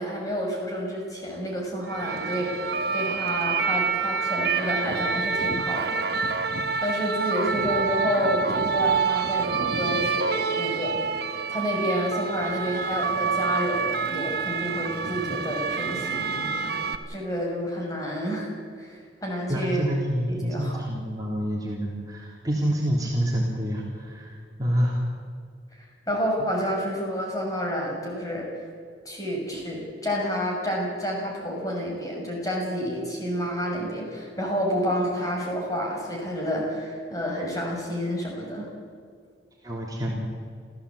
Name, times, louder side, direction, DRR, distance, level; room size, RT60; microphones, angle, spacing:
voice 1, 0.0-6.5 6.8-16.5 17.1-18.5 18.8-19.9 20.3-20.8 25.7-28.5 29.0-38.7, equal, 20° left, -1 dB, 6.4 m, -29 dB
sound 1, 1.9-17.0, right 5 dB, 55° right, 1.5 m, -27 dB
voice 2, 19.5-25.1 39.6-40.3, equal, 20° right, -3 dB, 3.4 m, -27 dB
27.5 x 15.5 x 8.5 m, 2.1 s
head